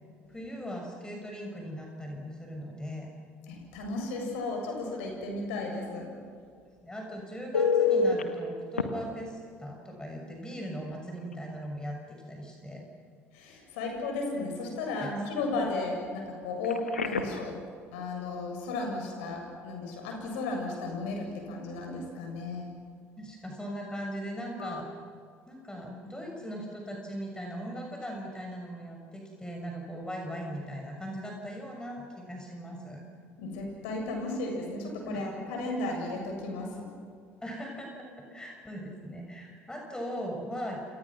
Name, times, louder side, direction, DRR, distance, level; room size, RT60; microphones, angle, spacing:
voice 1, 0.3-3.1 6.8-12.8 15.0-15.1 23.2-24.9 25.5-33.0 35.0-35.3 37.4-40.9, equal, 10° left, 1 dB, 6.5 m, -39 dB
voice 2, 3.5-6.1 13.3-17.6 17.9-22.7 33.4-36.9, left 2 dB, 70° left, 2 dB, 7.6 m, -34 dB
Telephone, 7.5-8.2 8.8-8.9 10.6-10.8 11.2-11.3 16.6-17.5 24.6-24.8, left 5 dB, 85° left, 1.7 m, -27 dB
30.0 x 28.0 x 6.2 m, 2.2 s
figure-of-eight pair, 60°, 7 cm